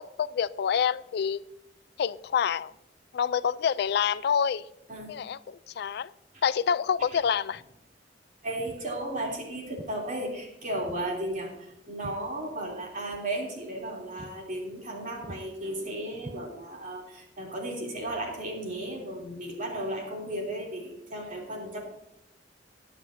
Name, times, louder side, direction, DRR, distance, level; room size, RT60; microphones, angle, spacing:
voice 1, 0.0-1.4 2.0-2.7 3.1-4.6 5.1-6.1 6.4-7.6, left 7 dB, 65° left, 18 dB, 0.3 m, -27 dB
voice 2, 8.4-21.8, right 1 dB, 50° right, -1 dB, 3.1 m, -35 dB
Walk footsteps, 8.6-8.9 9.8-10.0 10.8-11.1 11.4-12.8 13.1-13.3 13.7-13.9 14.2-14.4 14.7-15.0 15.2-15.5 16.2-16.9, right 1 dB, 25° right, 0.6 m, -46 dB
21.0 x 7.5 x 2.7 m, 0.87 s
head